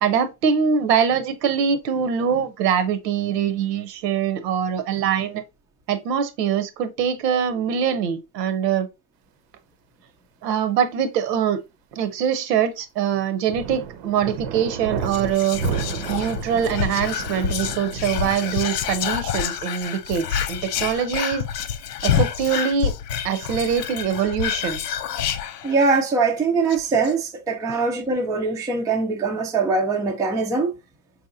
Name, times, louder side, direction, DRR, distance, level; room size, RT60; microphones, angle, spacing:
voice 1, 0.0-5.4 5.9-8.9 10.4-11.6 11.9-15.6 16.1-21.5 22.0-22.9 23.2-24.8 27.7-27.8, right 8 dB, 85° right, 0.8 m, -23 dB
sound 1, 13.5-18.7, right 7 dB, 50° right, 0.6 m, -32 dB
Whispering, 15.0-26.1 26.4-26.5 26.7-27.1, left 8 dB, 85° left, 0.6 m, -27 dB
voice 2, 25.6-30.7, right 4 dB, 10° right, 0.3 m, -22 dB
4.5 x 2.8 x 2.4 m
hypercardioid pair, 100°, 47 cm